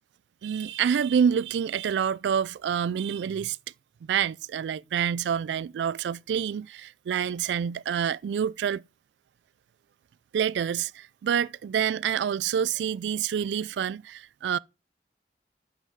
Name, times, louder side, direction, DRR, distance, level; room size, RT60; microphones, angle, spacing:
voice 1, 0.4-3.6 4.0-8.8 10.3-14.6, right 8 dB, 85° right, 0.3 m, -27 dB
8.1 x 6.0 x 3.6 m
head